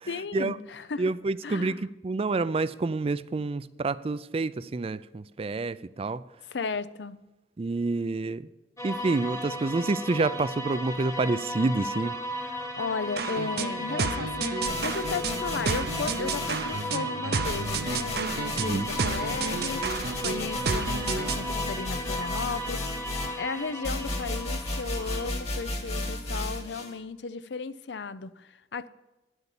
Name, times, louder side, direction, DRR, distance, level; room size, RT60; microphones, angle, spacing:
voice 1, 0.1-1.1 1.4-1.9 6.5-7.2 12.4-28.9, left 4 dB, 80° left, 0.6 m, -35 dB
voice 2, 1.0-1.8 2.0-6.2 7.6-8.4 8.8-12.2 18.6-18.9, right 3 dB, 35° right, 0.4 m, -28 dB
sound 1, 8.8-25.3, equal, 20° left, 1.3 m, -35 dB
sound 2, 13.2-21.5, right 4 dB, 60° right, 0.7 m, -31 dB
sound 3, 14.6-16.9 17.4-26.9, left 2 dB, 40° left, 1.8 m, -34 dB
10.5 x 8.0 x 7.3 m
head